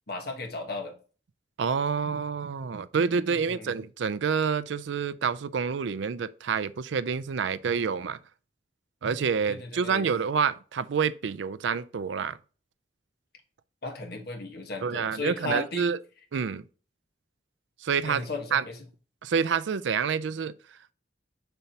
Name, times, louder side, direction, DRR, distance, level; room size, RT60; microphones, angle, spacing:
voice 1, 0.1-0.9 3.3-3.7 9.5-10.1 13.8-15.9 18.0-18.8, left 2 dB, 55° left, 1.3 m, -35 dB
voice 2, 1.6-8.2 9.0-12.4 14.8-16.0 16.3-16.6 17.8-18.3 18.5-18.6 19.2-20.5, right 6 dB, 75° right, 0.4 m, -28 dB
6.9 x 5.8 x 2.8 m
head